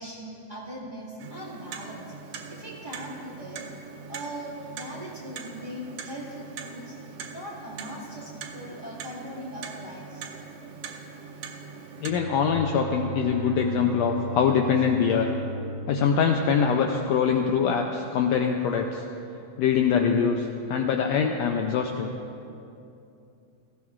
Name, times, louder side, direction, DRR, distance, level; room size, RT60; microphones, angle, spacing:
voice 1, 0.0-3.7 4.1-7.0 7.3-10.3, equal, 20° right, -7 dB, 1.7 m, -40 dB
Clock, 1.2-12.1, right 6 dB, 75° right, 1.4 m, -41 dB
Bowed string instrument, 11.9-17.1, right 2 dB, 15° left, 3.4 m, -36 dB
voice 2, 12.0-15.3 15.9-19.0 19.6-22.1, left 6 dB, 85° left, 3 dB, 1.5 m, -23 dB
17.0 x 15.5 x 2.4 m, 2.7 s
omnidirectional pair, 3.6 m